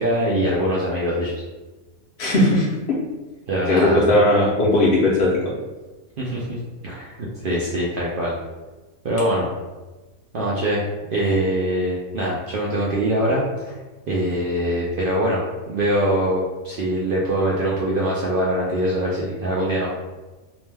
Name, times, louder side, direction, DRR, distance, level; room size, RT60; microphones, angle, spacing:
voice 1, 0.0-1.3 3.5-4.3 6.2-6.6 6.8-8.4 9.0-9.5 10.3-10.8 11.1-13.7 14.1-19.9, right 1 dB, 85° right, -5 dB, 0.4 m, -23 dB
voice 2, 2.2-3.0 3.7-5.3, left 1 dB, 60° left, -5 dB, 0.6 m, -18 dB
2.6 x 2.1 x 3.2 m, 1.2 s
omnidirectional pair, 1.5 m